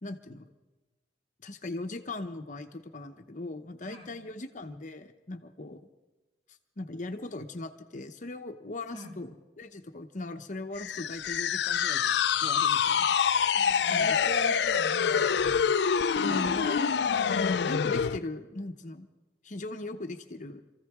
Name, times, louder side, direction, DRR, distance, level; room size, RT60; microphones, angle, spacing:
voice 1, 0.0-0.5 1.4-5.8 6.5-13.2 13.9-14.3 16.2-16.9 17.3-19.1 19.4-20.6, left 2 dB, 45° left, 7 dB, 0.8 m, -39 dB
sound 1, 10.8-18.2, left 7 dB, 70° left, 0.4 m, -26 dB
voice 2, 13.5-15.5 16.1-16.7, right 2 dB, 35° right, -3 dB, 4.2 m, -43 dB
26.5 x 15.0 x 3.6 m, 1.1 s
head